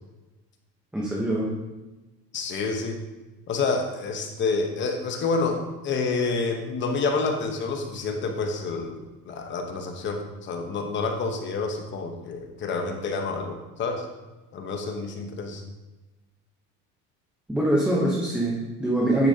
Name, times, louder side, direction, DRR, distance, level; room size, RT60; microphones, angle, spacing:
voice 1, 0.9-1.5 17.5-19.3, right 1 dB, 5° right, -5 dB, 0.9 m, -24 dB
voice 2, 2.3-3.0 3.5-14.1 14.5-15.6, left 4 dB, 35° left, 4 dB, 1.0 m, -28 dB
10.0 x 6.9 x 2.8 m, 1.1 s
cardioid pair, 145°, 33 cm